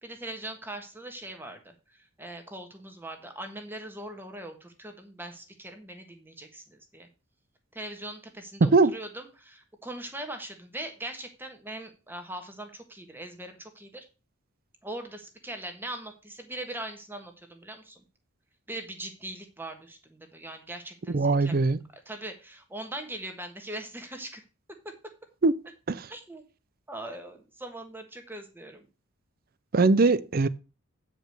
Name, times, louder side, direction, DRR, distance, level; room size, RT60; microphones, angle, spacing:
voice 1, 0.0-7.1 7.7-14.1 14.8-18.0 18.7-21.6 22.0-24.4 24.8-24.9 26.1-26.4 26.9-28.8, right 1 dB, 10° right, 1.4 m, -41 dB
voice 2, 8.6-8.9 21.1-21.8 25.4-25.6 25.9-26.1 29.7-30.5, right 3 dB, 45° right, 0.5 m, -21 dB
8.9 x 5.0 x 6.4 m
head